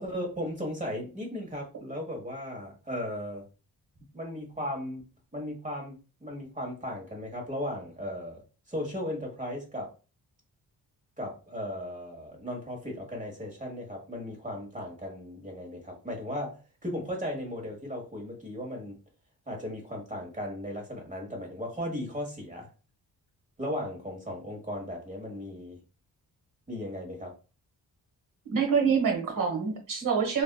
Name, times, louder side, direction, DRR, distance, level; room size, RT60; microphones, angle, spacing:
voice 1, 0.0-3.4 4.1-5.0 5.3-8.4 8.7-9.9 11.2-19.0 19.5-22.7 23.6-25.8 26.7-27.3, left 1 dB, 20° right, 0 dB, 1.2 m, -36 dB
voice 2, 28.4-30.4, right 6 dB, 55° right, 2 dB, 1.2 m, -26 dB
3.4 x 2.4 x 2.2 m, 0.33 s
cardioid pair, 100°, 38 cm